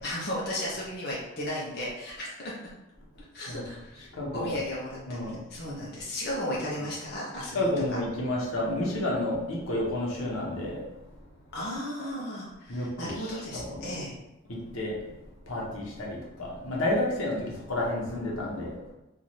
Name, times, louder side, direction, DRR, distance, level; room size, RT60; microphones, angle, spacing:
voice 1, 0.0-2.5 3.3-7.7 11.5-14.1, left 1 dB, 50° left, -6 dB, 0.8 m, -35 dB
voice 2, 3.9-4.6 5.1-5.4 6.8-6.9 7.4-10.8 12.7-13.9 14.5-15.0 15.5-18.7, left 1 dB, 85° left, -3 dB, 1.0 m, -31 dB
3.1 x 2.6 x 4.1 m, 0.95 s
head